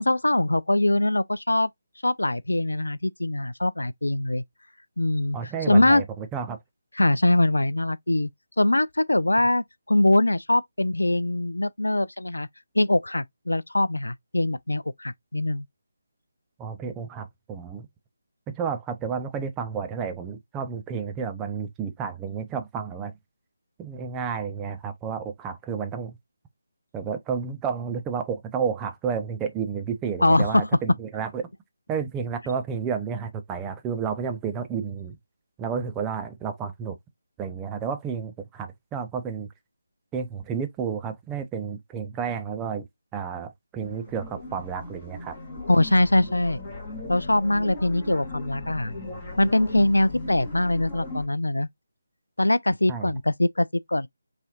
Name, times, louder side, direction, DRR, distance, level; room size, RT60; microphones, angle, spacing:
voice 1, 0.0-1.7 2.0-4.4 5.0-5.4 5.7-6.0 7.0-8.3 8.6-12.5 12.8-15.6 30.2-30.7 45.7-46.6 47.1-48.9 49.4-51.7 52.4-54.1, left 1 dB, 70° left, 0.4 m, -22 dB
voice 2, 5.3-6.6 16.6-17.9 18.5-23.1 23.8-26.2 26.9-31.5 31.9-35.2 35.6-37.0 37.4-39.5 40.1-42.9 43.1-45.4 52.9-53.1, right 6 dB, 10° right, 0.5 m, -31 dB
sound 1, 43.8-51.3, left 2 dB, 10° left, 2.4 m, -38 dB
5.4 x 3.2 x 2.5 m
figure-of-eight pair, 155°, 0 cm